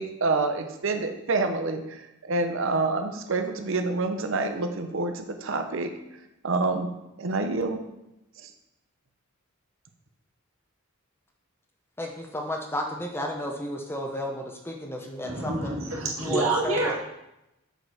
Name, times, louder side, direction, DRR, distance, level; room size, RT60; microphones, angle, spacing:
voice 1, 0.0-5.9 6.4-6.9 7.2-7.8 8.4-8.5, right 3 dB, 65° right, 6 dB, 0.8 m, -27 dB
voice 2, 12.0-15.7 16.2-16.9, left 1 dB, 10° left, 1 dB, 0.8 m, -33 dB
voice 3, 15.2-16.9, right 2 dB, 85° right, -3 dB, 2.0 m, -27 dB
6.6 x 4.8 x 4.9 m, 0.89 s
head